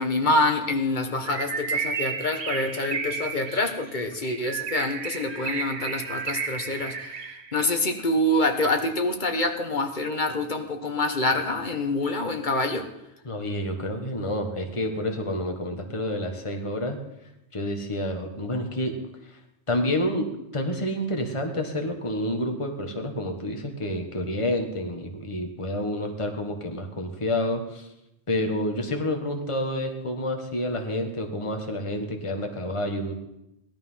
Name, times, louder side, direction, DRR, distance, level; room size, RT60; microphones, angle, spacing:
voice 1, 0.0-7.3 7.5-12.9, left 2 dB, 45° left, 5 dB, 1.5 m, -26 dB
Bird, 1.2-7.6, right 5 dB, 65° right, 1.2 m, -32 dB
voice 2, 13.2-17.0 17.5-18.9 19.3-19.4 19.7-27.9 28.3-33.1, left 1 dB, 25° left, 4 dB, 1.6 m, -29 dB
17.5 x 12.5 x 5.7 m, 0.85 s
omnidirectional pair, 1.2 m